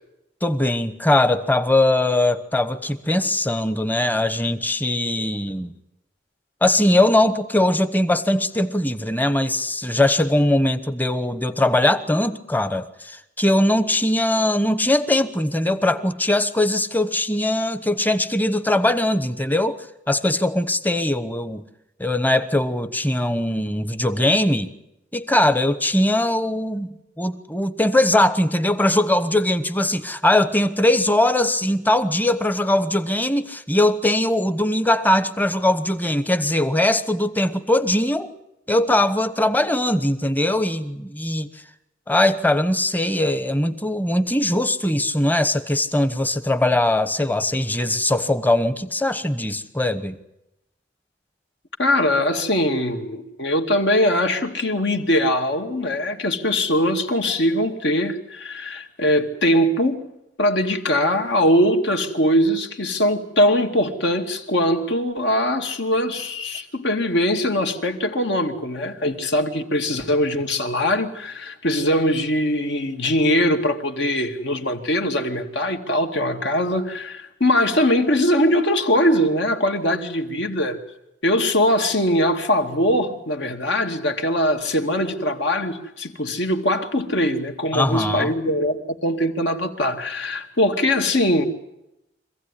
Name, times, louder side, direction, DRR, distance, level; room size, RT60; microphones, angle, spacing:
voice 1, 0.4-5.7 6.6-19.8 20.1-21.6 22.0-24.7 25.1-26.9 27.2-38.3 38.7-41.5 42.1-50.2 87.7-88.3, left 1 dB, 10° left, 1.1 m, -21 dB
voice 2, 51.8-60.0 60.4-80.8 81.2-91.5, left 1 dB, 65° left, 2.4 m, -21 dB
25.5 x 16.0 x 10.0 m
head